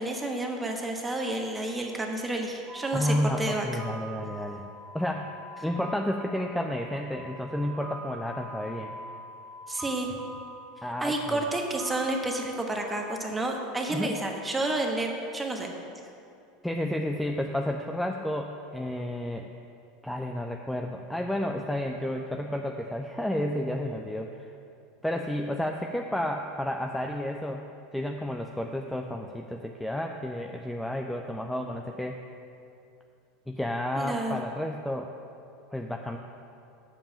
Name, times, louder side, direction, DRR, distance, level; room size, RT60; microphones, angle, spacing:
voice 1, 0.0-3.7 9.7-10.1 11.0-15.7 34.0-34.4, right 2 dB, 15° right, 1 dB, 1.2 m, -30 dB
sound 1, 2.7-12.8, right 1 dB, 35° right, 1.7 m, -44 dB
voice 2, 2.9-4.7 4.9-5.3 5.6-8.9 10.8-11.4 13.9-14.2 16.6-19.5 20.0-24.5 25.0-27.7 27.9-32.2 33.5-35.1 35.7-36.2, left 1 dB, 5° left, 2 dB, 0.5 m, -31 dB
7.0 x 5.4 x 7.1 m, 2.6 s
hypercardioid pair, 85°, 0 cm